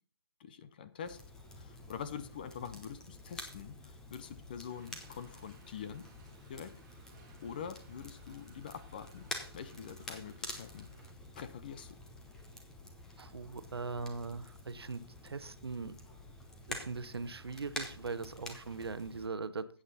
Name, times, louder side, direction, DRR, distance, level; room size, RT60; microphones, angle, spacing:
voice 1, 0.4-1.2 1.6-6.1 6.5-6.7 7.4-9.3 9.5-10.9 11.4-12.0, left 7 dB, 20° left, 12 dB, 0.5 m, -45 dB
Crackle, 1.0-19.3, left 1 dB, 5° left, 0.9 m, -48 dB
sound 1, 4.7-11.1, right 4 dB, 15° right, 2.2 m, -65 dB
voice 2, 13.2-15.9 16.7-19.7, right 4 dB, 75° right, 13 dB, 1.0 m, -40 dB
13.0 x 8.5 x 4.1 m, 0.43 s
hypercardioid pair, 165°, 13 cm